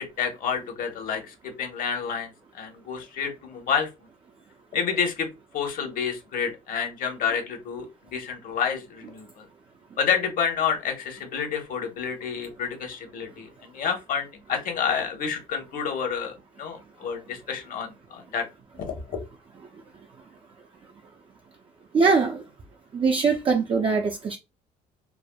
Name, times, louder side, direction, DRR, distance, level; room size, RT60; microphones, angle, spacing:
voice 1, 0.0-3.9 4.7-5.3 5.5-9.4 10.0-18.5 18.9-19.0, left 7 dB, 55° left, 1.0 m, -29 dB
voice 2, 21.9-22.4 22.9-24.4, right 4 dB, 30° right, 0.4 m, -22 dB
3.3 x 2.0 x 2.2 m
cardioid pair, 110°, 17 cm